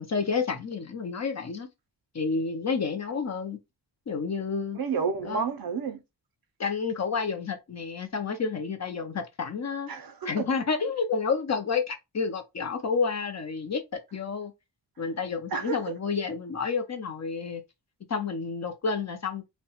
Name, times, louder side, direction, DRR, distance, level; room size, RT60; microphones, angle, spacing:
voice 1, 0.0-1.7 2.1-3.6 4.1-4.8 5.2-5.4 6.6-9.9 10.3-14.5 15.0-17.6 18.1-19.5, left 5 dB, 40° left, 0.4 m, -30 dB
voice 2, 4.7-6.0 9.9-10.5 15.5-15.9, right 5 dB, 55° right, 0.5 m, -30 dB
2.7 x 2.1 x 2.7 m
wide cardioid pair, 130°, 44 cm